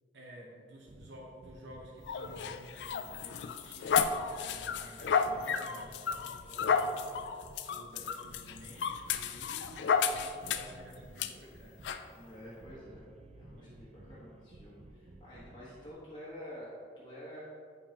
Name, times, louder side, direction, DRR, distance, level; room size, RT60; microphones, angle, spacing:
voice 1, 0.1-9.7 10.0-11.8 12.2-12.5 13.5-13.8, equal, 90° right, -3 dB, 0.9 m, -53 dB
sound 1, 0.8-15.9, right 1 dB, 35° right, 0.4 m, -55 dB
sound 2, 2.1-10.8 11.2-11.3 11.8-12.0, left 6 dB, 75° left, 0.3 m, -32 dB
voice 2, 9.2-9.6 12.1-13.1 13.3-17.4, equal, 25° left, -9 dB, 1.2 m, -49 dB
8.3 x 5.3 x 2.9 m, 2.2 s
head